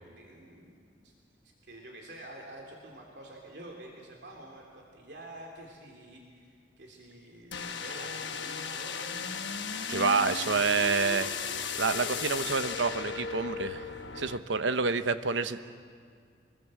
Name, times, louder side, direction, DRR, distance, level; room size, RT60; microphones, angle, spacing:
voice 1, 0.0-1.1 1.4-9.4 13.9-14.2, right 1 dB, 65° right, 0 dB, 3.3 m, -48 dB
sound 1, 7.5-14.4, left 6 dB, 80° left, 1.2 m, -36 dB
voice 2, 9.9-11.3 11.8-13.8 14.2-15.6, right 4 dB, 85° right, 11 dB, 1.0 m, -28 dB
25.5 x 21.5 x 7.6 m, 2.1 s
head